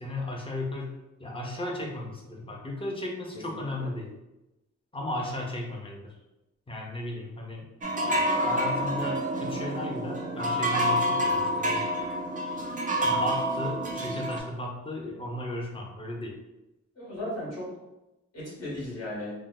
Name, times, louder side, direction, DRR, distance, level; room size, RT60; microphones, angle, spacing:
voice 1, 0.0-4.1 4.9-6.1 6.7-7.6 8.4-11.9 13.0-16.4, left 1 dB, 20° left, -1 dB, 0.6 m, -35 dB
voice 2, 3.5-3.9 17.0-17.7 18.3-19.3, left 1 dB, 60° left, -6 dB, 1.2 m, -36 dB
sound 1, 7.8-14.4, equal, 30° right, 0.4 m, -28 dB
2.6 x 2.1 x 3.6 m, 0.98 s
wide cardioid pair, 115°, 29 cm